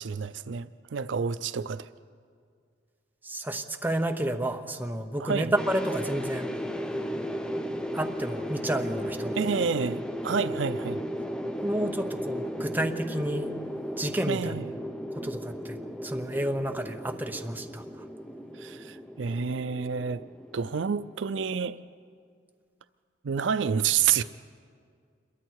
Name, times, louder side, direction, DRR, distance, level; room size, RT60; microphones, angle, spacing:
voice 1, 0.0-1.9 5.2-5.5 9.4-11.0 14.3-14.6 18.6-20.2 20.5-21.8 23.2-24.2, right 6 dB, 75° right, 0.5 m, -29 dB
voice 2, 3.2-6.5 7.9-9.6 11.6-13.5 14.0-14.6 15.2-17.8, right 1 dB, 10° right, 1.0 m, -31 dB
sound 1, 5.6-21.7, equal, 5° left, 0.7 m, -35 dB
27.0 x 22.5 x 4.7 m
head